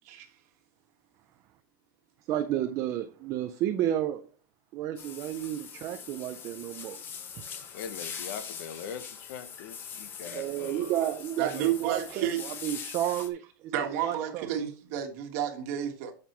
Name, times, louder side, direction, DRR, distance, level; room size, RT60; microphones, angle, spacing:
voice 1, 2.3-4.3 4.7-7.0 7.3-7.6 10.3-13.7 14.0-14.5, right 12 dB, 25° right, 0.4 m, -32 dB
sound 1, 5.0-13.3, left 7 dB, 20° left, 0.7 m, -42 dB
voice 2, 7.7-11.0, left 8 dB, 55° left, 0.9 m, -42 dB
voice 3, 11.4-12.4 13.7-16.1, right 10 dB, 45° right, 1.5 m, -31 dB
9.0 x 6.6 x 3.0 m
supercardioid pair, 180°, 12 cm